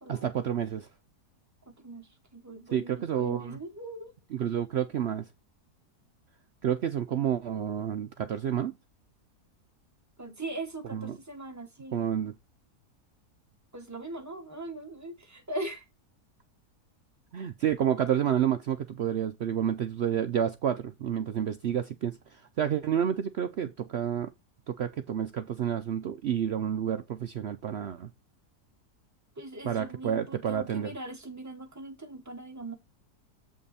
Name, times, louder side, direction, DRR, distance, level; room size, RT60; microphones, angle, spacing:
voice 1, 0.1-0.9 2.7-3.6 4.3-5.3 6.6-8.7 10.9-11.2 11.9-12.3 17.3-24.3 24.7-28.1 29.6-30.9, right 9 dB, 70° right, 0.6 m, -29 dB
voice 2, 1.8-4.1 10.2-12.0 13.7-15.8 29.4-32.8, right 2 dB, 10° right, 1.0 m, -40 dB
7.7 x 5.4 x 4.1 m
omnidirectional pair, 1.7 m